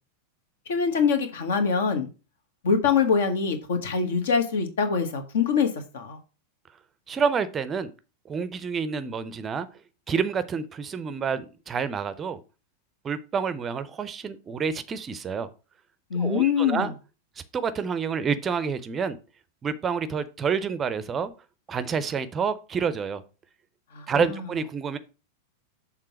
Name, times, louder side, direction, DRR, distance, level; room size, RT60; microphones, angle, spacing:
voice 1, 0.7-2.1 2.6-6.2 16.1-16.9 23.9-24.0, left 6 dB, 60° left, 7 dB, 1.3 m, -24 dB
voice 2, 7.1-7.9 8.3-9.7 10.1-12.4 13.0-15.5 16.1-16.9 17.5-19.2 19.6-21.3 21.7-23.2 24.1-25.0, right 6 dB, 20° right, 13 dB, 0.6 m, -28 dB
6.7 x 3.6 x 6.0 m, 0.32 s
figure-of-eight pair, 90°, 0 cm